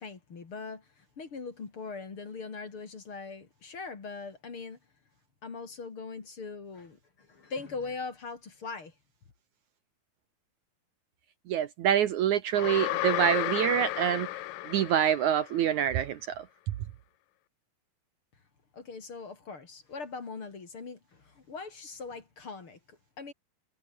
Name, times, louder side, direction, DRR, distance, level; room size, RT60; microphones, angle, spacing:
voice 1, 0.0-4.8 5.4-8.9 18.7-23.3, left 4 dB, 40° left, 3.4 m, -41 dB
voice 2, 11.5-14.3 14.7-16.5, right 10 dB, 65° right, 2.2 m, -26 dB
sound 1, 12.6-15.7, left 17 dB, 75° left, 2.4 m, -33 dB
omnidirectional pair, 4.1 m